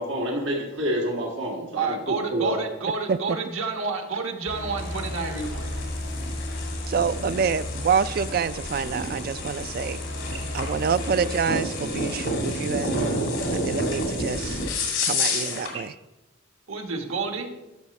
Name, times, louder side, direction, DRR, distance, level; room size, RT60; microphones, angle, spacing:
voice 1, 0.0-2.6, right 1 dB, 65° right, 0 dB, 1.7 m, -28 dB
voice 2, 1.8-5.7 16.7-17.5, right 4 dB, 85° right, 5 dB, 1.4 m, -29 dB
sound 1, 4.5-11.5, left 1 dB, 50° left, 1.7 m, -34 dB
sound 2, 4.8-15.8, left 1 dB, 85° left, 2.3 m, -30 dB
voice 3, 6.9-10.0 10.5-14.6 15.1-15.9, right 6 dB, 45° right, 14 dB, 0.3 m, -27 dB
11.5 x 6.4 x 4.2 m, 1.0 s
head